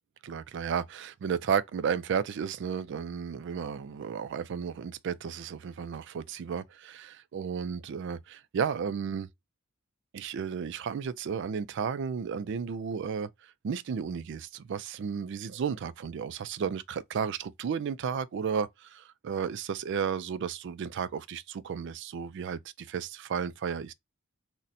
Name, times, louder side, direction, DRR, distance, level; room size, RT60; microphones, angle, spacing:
voice 1, 0.2-9.3 10.1-23.9, right 7 dB, 60° right, 0.3 m, -33 dB
4.1 x 2.1 x 2.5 m
head